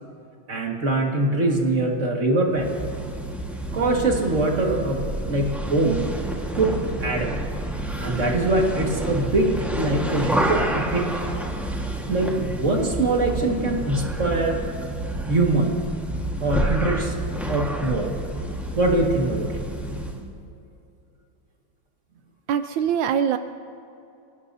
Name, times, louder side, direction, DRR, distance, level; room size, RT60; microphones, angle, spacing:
voice 1, 0.5-2.7 3.7-5.0 5.3-6.1 6.5-7.3 8.0-11.1 12.1-14.6 15.3-15.8 16.4-17.1 17.5-18.1 18.8-19.6, right 2 dB, 40° right, 0 dB, 2.1 m, -23 dB
sound 1, 2.5-20.3, right 1 dB, ahead, 1.2 m, -29 dB
voice 2, 22.5-23.4, right 8 dB, 80° right, 9 dB, 1.3 m, -22 dB
28.5 x 17.5 x 2.7 m, 2.6 s
omnidirectional pair, 2.1 m